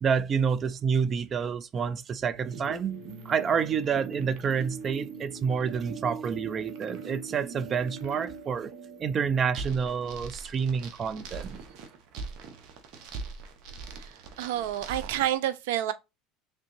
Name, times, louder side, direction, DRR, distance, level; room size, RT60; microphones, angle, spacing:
voice 1, 0.0-8.7 9.0-11.6, right 6 dB, 35° right, 0.5 m, -28 dB
sound 1, 2.3-15.4, right 4 dB, 60° right, 1.0 m, -42 dB
voice 2, 14.4-15.9, right 12 dB, 85° right, 0.6 m, -28 dB
3.7 x 3.3 x 2.9 m
supercardioid pair, 115°, 0 cm